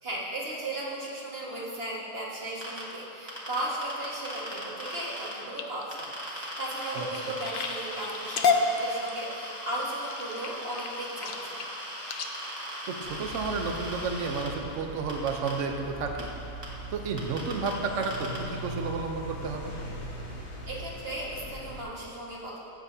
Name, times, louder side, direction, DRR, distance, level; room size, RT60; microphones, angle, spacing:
voice 1, 0.0-11.6 20.7-22.6, right 1 dB, 40° right, -5 dB, 1.9 m, -36 dB
sound 1, 2.6-2.8 3.3-5.3 5.9-14.5 15.1-15.5 16.2-16.3 16.6-16.7 17.2-17.7 18.0-18.4, equal, 15° right, 1.8 m, -39 dB
sound 2, 5.2-13.9 14.5-14.8 15.2-15.6 16.0-16.1 16.5-16.6, left 4 dB, 60° left, 0.5 m, -33 dB
voice 2, 6.9-7.4 12.9-16.3 16.9-19.8, right 4 dB, 60° right, 3 dB, 1.1 m, -32 dB
side street, 13.0-21.8, equal, 90° left, 1.8 m, -41 dB
14.5 x 9.0 x 2.8 m, 2.9 s
omnidirectional pair, 1.6 m